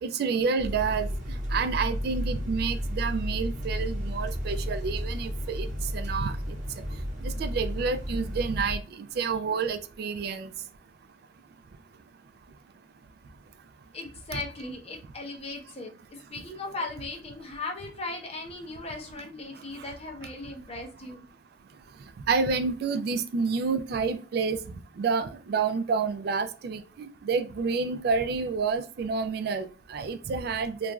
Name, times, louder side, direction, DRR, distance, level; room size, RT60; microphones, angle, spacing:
voice 1, 0.0-5.7 5.9-6.6 7.2-10.5 22.3-30.9, right 5 dB, 60° right, 0.3 m, -29 dB
sound 1, 0.6-8.8, equal, 40° right, 1.1 m, -32 dB
voice 2, 13.9-21.3, left 3 dB, 35° left, 0.6 m, -38 dB
3.0 x 2.4 x 2.2 m
head